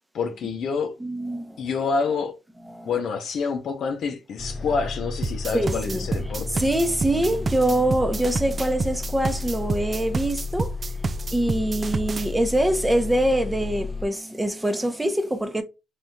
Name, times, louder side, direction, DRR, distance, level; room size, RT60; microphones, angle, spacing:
voice 1, 0.1-0.9 1.6-2.3 2.8-6.6, left 5 dB, 65° left, 0.7 m, -27 dB
voice 2, 1.0-1.6 2.7-2.9 5.5-6.0 6.5-10.8 11.3-15.6, right 1 dB, 10° right, 0.9 m, -24 dB
Bus, 4.4-14.1, left 3 dB, 30° left, 1.1 m, -33 dB
sound 1, 5.2-12.3, right 4 dB, 35° right, 0.3 m, -29 dB
3.6 x 3.5 x 2.7 m
supercardioid pair, 75°, 0 cm